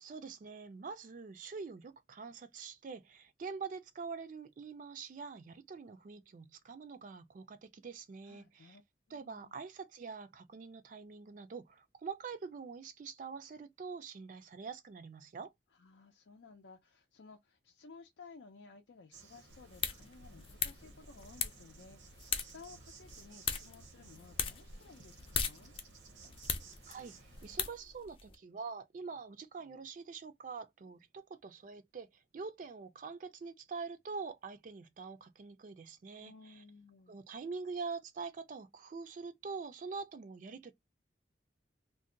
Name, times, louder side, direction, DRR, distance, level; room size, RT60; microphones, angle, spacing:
voice 1, 0.0-8.8 9.1-15.5 26.9-36.6 37.1-40.7, right 5 dB, 45° right, 0.3 m, -45 dB
voice 2, 8.2-8.8 9.1-9.5 15.7-25.7 36.2-37.2, left 4 dB, 90° left, 0.5 m, -57 dB
Insect, 19.1-27.6, right 4 dB, 85° right, 0.8 m, -58 dB
sound 1, 19.5-28.3, left 7 dB, 30° left, 0.5 m, -40 dB
2.6 x 2.1 x 3.7 m
head